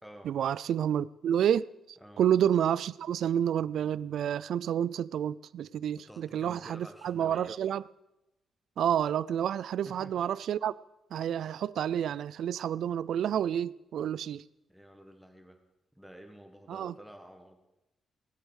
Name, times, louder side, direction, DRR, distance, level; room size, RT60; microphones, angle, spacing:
voice 1, 0.3-7.8 8.8-10.7 11.1-14.5 16.7-16.9, right 9 dB, 70° right, 0.4 m, -29 dB
voice 2, 5.9-7.5 9.8-10.2 14.7-15.6 15.9-17.6, equal, ahead, 1.6 m, -50 dB
19.5 x 8.2 x 6.4 m
cardioid pair, 140°, 0 cm